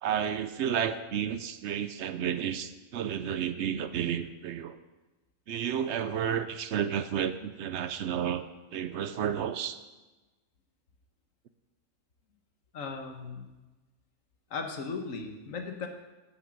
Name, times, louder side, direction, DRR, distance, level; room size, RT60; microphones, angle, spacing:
voice 1, 0.0-4.8 5.5-8.5 8.7-9.8, right 9 dB, 65° right, 12 dB, 0.8 m, -31 dB
voice 2, 12.7-13.5 14.5-15.9, left 4 dB, 85° left, 5 dB, 1.6 m, -37 dB
9.9 x 6.4 x 7.6 m, 1.2 s
omnidirectional pair, 1.3 m